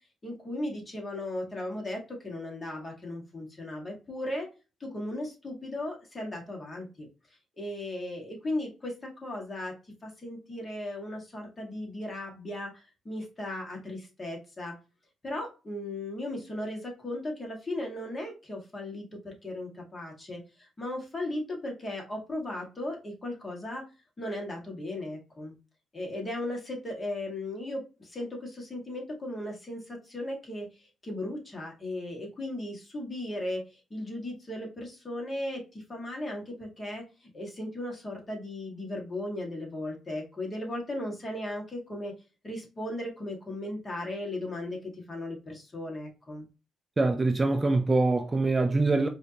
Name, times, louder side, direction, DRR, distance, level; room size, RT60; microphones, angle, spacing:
voice 1, 0.2-4.5 4.8-7.1 7.6-9.7 10.0-14.7 15.2-23.9 24.2-25.5 25.9-33.6 33.9-42.2 42.4-46.5, left 1 dB, 25° left, 1.9 m, -36 dB
voice 2, 47.0-49.1, right 3 dB, 25° right, 0.5 m, -24 dB
4.9 x 2.8 x 2.8 m
cardioid pair, 90°, 0 cm